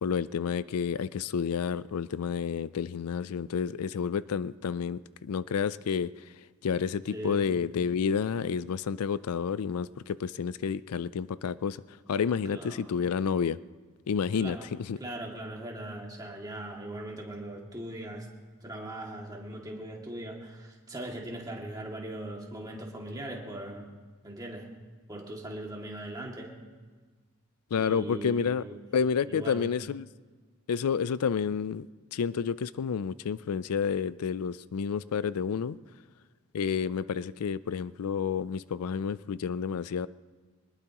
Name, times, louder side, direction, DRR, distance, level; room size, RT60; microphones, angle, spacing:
voice 1, 0.0-6.1 6.6-11.8 12.1-13.6 14.1-15.0 27.7-28.6 28.9-30.1 30.7-31.9 32.1-35.8 36.5-40.1, left 6 dB, 85° left, 17 dB, 0.4 m, -30 dB
voice 2, 7.1-7.4 12.1-12.2 12.5-13.0 14.3-14.7 15.0-18.3 18.6-23.9 24.2-24.7 25.1-26.5 27.8-28.8 29.2-29.6, right 1 dB, 15° right, -1 dB, 2.3 m, -40 dB
23.5 x 20.0 x 3.0 m, 1.4 s
head